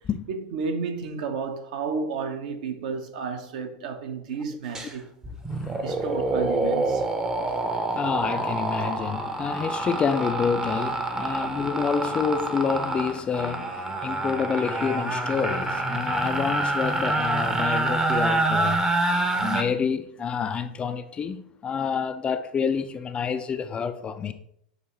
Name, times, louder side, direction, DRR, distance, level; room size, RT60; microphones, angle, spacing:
voice 1, 0.3-5.1 5.8-7.1, right 5 dB, 60° right, 0.9 m, -31 dB
sound 1, 4.7-4.9 5.2-19.6, right 2 dB, 15° right, 0.6 m, -27 dB
voice 2, 5.5-6.0 7.3-18.8 19.4-24.3, left 6 dB, 25° left, 0.3 m, -28 dB
6.4 x 2.6 x 3.0 m
hypercardioid pair, 95°, 5 cm